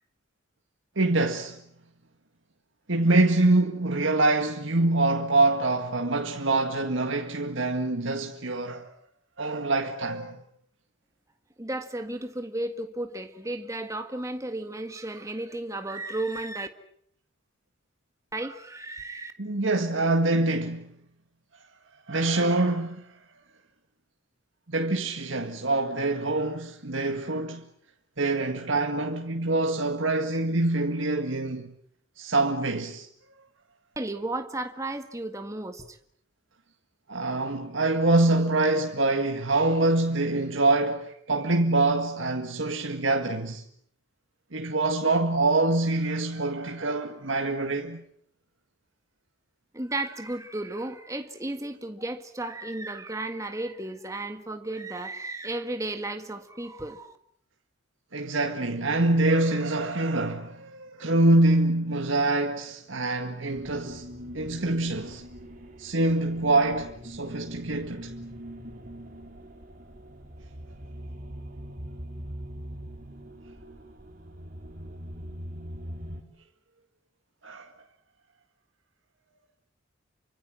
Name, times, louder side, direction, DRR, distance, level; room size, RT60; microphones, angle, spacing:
voice 1, 1.0-1.6 2.9-8.9 9.4-10.4 19.4-20.9 22.1-23.0 24.7-27.7 28.2-31.7 32.2-33.1 37.1-43.6 44.5-48.0 58.1-64.1 64.3-65.2 65.8-68.1 77.4-77.7, right 2 dB, 75° right, 1.9 m, -25 dB
voice 2, 11.6-16.7 18.3-19.3 34.0-36.0 49.7-57.2, right 2 dB, 15° right, 1.7 m, -34 dB
sound 1, 63.5-76.2, equal, 45° right, 4.2 m, -42 dB
29.0 x 25.0 x 7.6 m
head